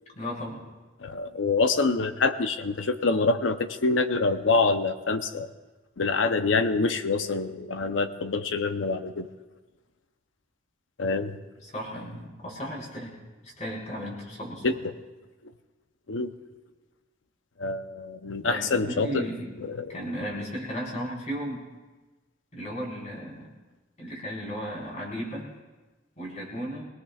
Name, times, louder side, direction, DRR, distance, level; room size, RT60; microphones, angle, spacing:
voice 1, 0.1-0.6 11.6-13.1 13.4-14.8 18.5-19.5 19.9-21.6 22.5-23.5 24.0-25.5 26.2-26.8, equal, 40° left, -4 dB, 4.5 m, -35 dB
voice 2, 1.0-5.5 6.0-9.3 11.0-11.3 14.6-14.8 15.4-15.5 16.1-16.3 17.6-19.3 19.6-19.9, left 3 dB, 90° left, 9 dB, 0.7 m, -26 dB
25.0 x 18.0 x 2.4 m, 1.2 s
head